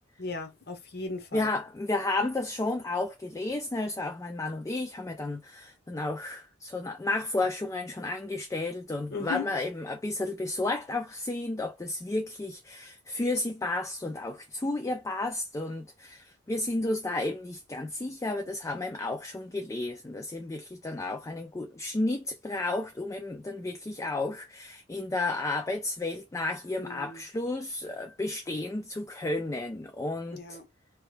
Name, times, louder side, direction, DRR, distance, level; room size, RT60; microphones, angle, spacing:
voice 1, 0.2-1.5 9.1-9.5 26.8-27.2 30.3-30.7, left 3 dB, 55° left, 0.8 m, -37 dB
voice 2, 1.3-30.6, left 2 dB, 15° left, 0.3 m, -32 dB
2.9 x 2.2 x 3.2 m
head